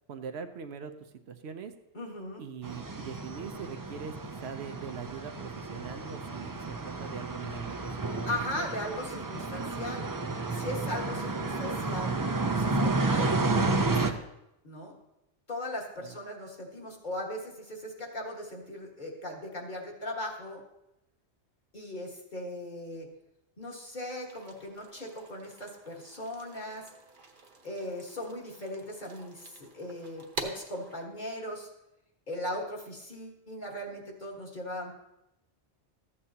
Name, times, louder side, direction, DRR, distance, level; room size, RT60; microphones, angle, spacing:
voice 1, 0.1-1.7 2.4-4.1 4.4-8.7 16.0-16.2, right 6 dB, 70° right, 8 dB, 0.9 m, -42 dB
voice 2, 1.9-2.4 8.3-10.1 10.5-12.1 12.6-13.3 14.6-14.9 15.5-20.6 21.7-23.1 23.6-26.9 27.6-31.7 32.3-34.9, left 1 dB, 40° left, -1 dB, 1.9 m, -38 dB
sound 1, 2.6-14.1, right 3 dB, 30° right, 0.4 m, -31 dB
sound 2, 24.3-31.1, right 3 dB, 50° right, 1.1 m, -46 dB
14.0 x 8.6 x 2.8 m, 0.88 s
omnidirectional pair, 1.2 m